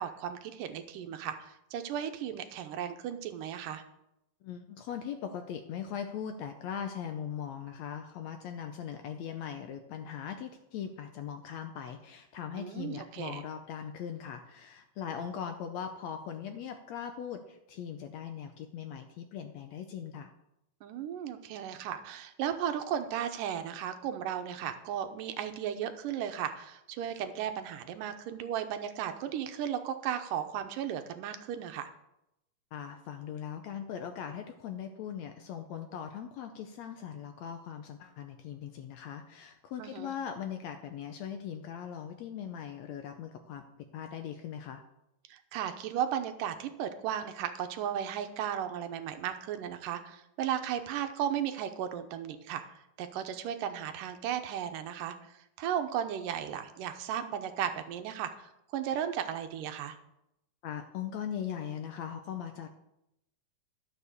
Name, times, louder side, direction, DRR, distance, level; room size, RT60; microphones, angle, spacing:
voice 1, 0.0-3.8 12.5-13.4 20.8-31.9 39.8-40.1 45.3-52.6 53.0-60.0, right 9 dB, 90° right, 8 dB, 2.5 m, -35 dB
voice 2, 4.4-20.3 32.7-44.8 60.6-62.7, left 8 dB, 75° left, 7 dB, 1.6 m, -40 dB
12.5 x 6.8 x 6.6 m, 0.85 s
omnidirectional pair, 3.8 m